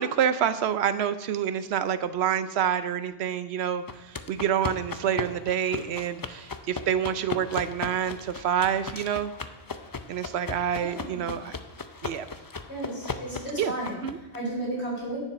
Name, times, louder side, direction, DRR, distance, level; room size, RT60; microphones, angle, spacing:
voice 1, 0.0-3.8 4.3-9.3 10.1-11.5 12.0-12.3 13.6-13.7 14.0-14.2, right 9 dB, 75° right, 12 dB, 0.9 m, -27 dB
sound 1, 3.9-14.4, left 4 dB, 35° left, 0.3 m, -37 dB
voice 2, 10.8-11.3 12.7-14.0 14.3-15.2, right 1 dB, 85° left, -5 dB, 4.9 m, -33 dB
10.0 x 7.2 x 5.4 m, 1.0 s
omnidirectional pair, 1.1 m